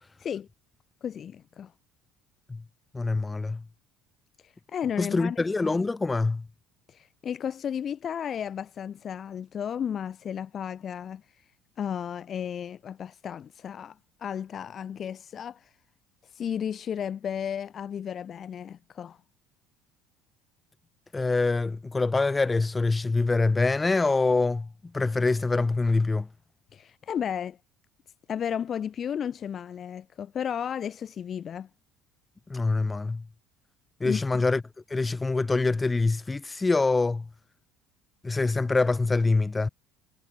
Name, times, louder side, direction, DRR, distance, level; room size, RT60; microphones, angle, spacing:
voice 1, 1.0-1.7 4.4-5.4 6.9-11.2 11.8-15.7 16.2-19.2 26.7-27.6 28.3-31.7 34.0-34.4, left 8 dB, 40° left, 4.1 m, -33 dB
voice 2, 2.9-3.6 5.0-6.4 21.1-24.7 24.9-26.3 32.5-33.2 34.0-34.6 34.9-37.2 38.2-39.7, left 3 dB, 20° left, 7.8 m, -25 dB
hypercardioid pair, 65°, 0 cm